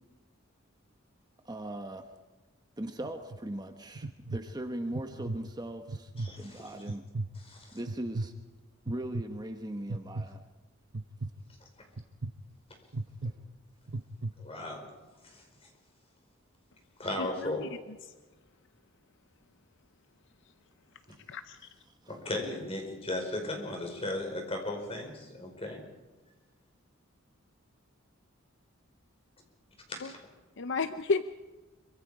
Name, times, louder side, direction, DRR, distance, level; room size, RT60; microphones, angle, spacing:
voice 1, 1.4-2.0 2.8-6.1 6.4-7.0 7.7-8.3 8.8-10.4 22.0-22.2, right 1 dB, 20° right, 6 dB, 1.1 m, -39 dB
sound 1, 3.0-3.4 4.0-4.4 4.9-5.4 5.9-6.3 6.9-7.3 7.9-8.3 8.9-9.2 9.9-10.3 10.9-11.3 12.0-12.3 12.9-13.3 13.9-14.3, right 2 dB, 60° right, 0.9 m, -35 dB
voice 2, 6.2-6.8 7.3-7.8 14.4-14.9 15.2-15.4 17.0-17.7 22.1-25.8 29.9-30.2, left 1 dB, 30° left, 3 dB, 5.0 m, -36 dB
voice 3, 17.2-17.7 18.1-18.2 21.3-21.7 30.0-30.1 30.6-31.2, left 4 dB, 60° left, 10 dB, 0.7 m, -32 dB
25.5 x 24.5 x 5.0 m, 1.2 s
head